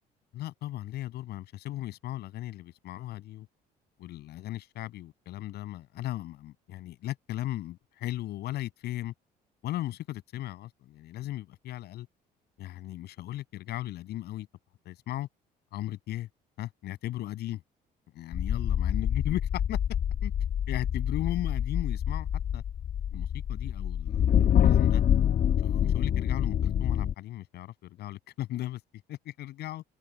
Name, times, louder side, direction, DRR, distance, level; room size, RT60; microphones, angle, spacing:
voice 1, 0.3-3.5 4.0-9.1 9.6-12.1 12.6-14.5 14.9-15.3 15.7-16.3 16.6-17.6 18.1-19.8 20.2-20.3 20.7-22.3 22.5-22.6 23.1-24.2 24.6-25.0 25.6-28.8 29.1-29.8, left 14 dB, 75° left, 7.0 m, -37 dB
sound 1, 18.3-27.1, left 9 dB, 55° left, 1.8 m, -26 dB
cardioid pair, 110°, 17 cm